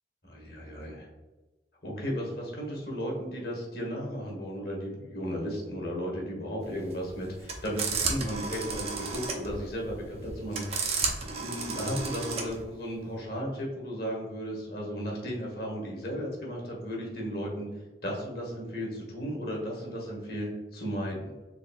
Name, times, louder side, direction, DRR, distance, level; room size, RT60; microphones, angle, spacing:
voice 1, 0.2-1.1 1.8-11.0 11.3-17.7 18.0-21.3, equal, 55° left, -2 dB, 1.3 m, -35 dB
sound 1, 6.7-12.6, right 4 dB, 35° right, 0.5 m, -33 dB
4.1 x 3.5 x 2.4 m, 1.2 s
head